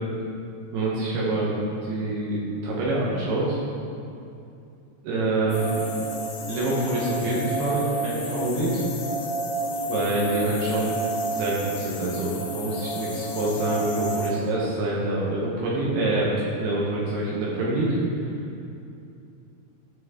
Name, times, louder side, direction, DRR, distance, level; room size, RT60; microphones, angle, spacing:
voice 1, 0.7-1.5 1.8-3.6 5.0-5.8 6.5-8.9 9.9-11.0 11.2-16.3 16.6-18.0, right 2 dB, 70° right, -6 dB, 2.6 m, -26 dB
sound 1, 5.5-14.3, right 1 dB, 75° left, 3.1 m, -31 dB
12.5 x 6.1 x 3.7 m, 2.6 s
omnidirectional pair, 5.7 m